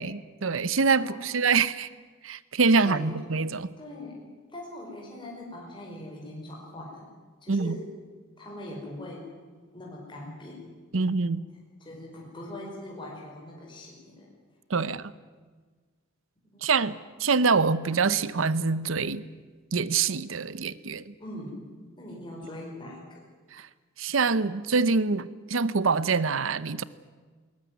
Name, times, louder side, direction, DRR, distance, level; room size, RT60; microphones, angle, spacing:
voice 1, 0.0-1.9 2.2-3.7 7.5-7.8 10.9-11.4 14.7-15.1 16.6-19.2 19.7-21.1 23.5-23.7 24.0-26.8, right 4 dB, 75° right, 17 dB, 0.8 m, -25 dB
voice 2, 2.8-3.3 3.8-7.1 7.4-7.9 8.4-9.3 9.7-11.1 11.8-14.3 14.8-15.0 16.4-16.6 21.2-21.7 22.0-23.2, left 1 dB, 25° left, -2 dB, 5.0 m, -42 dB
21.0 x 19.0 x 9.5 m, 1.5 s
head